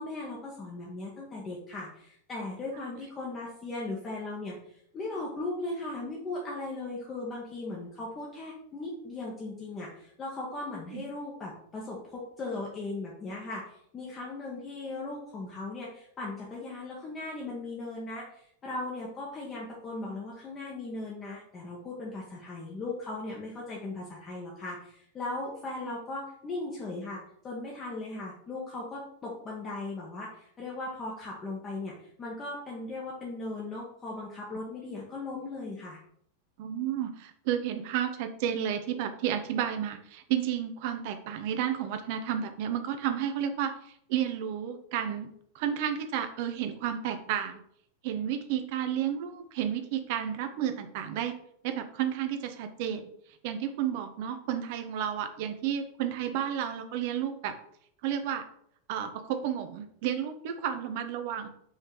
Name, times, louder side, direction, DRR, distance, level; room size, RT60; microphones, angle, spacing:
voice 1, 0.0-36.0, left 2 dB, 25° left, -4 dB, 1.4 m, -38 dB
voice 2, 36.6-47.6 48.0-51.3 51.6-53.1 53.4-57.5 58.0-58.4 58.9-61.5, right 9 dB, 50° right, 8 dB, 0.8 m, -32 dB
5.6 x 3.6 x 4.7 m, 0.68 s
figure-of-eight pair, 90°, 0 cm